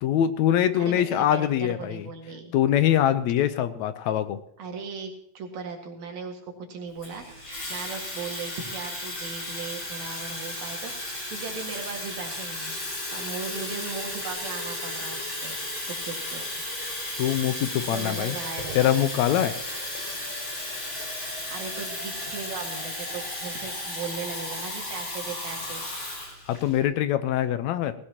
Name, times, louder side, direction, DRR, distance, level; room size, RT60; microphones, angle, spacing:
voice 1, 0.0-2.1 2.5-4.4 17.2-18.4 18.7-19.5 26.5-28.0, left 11 dB, 80° left, 11 dB, 2.1 m, -23 dB
voice 2, 0.8-2.5 4.6-15.6 15.8-16.5 17.9-19.1 21.5-25.8, right 5 dB, 75° right, 2 dB, 3.3 m, -38 dB
Water tap faucet / Fill (with liquid), 7.0-26.8, left 1 dB, 55° left, 6.5 m, -34 dB
19.0 x 16.5 x 2.9 m, 0.68 s
omnidirectional pair, 3.3 m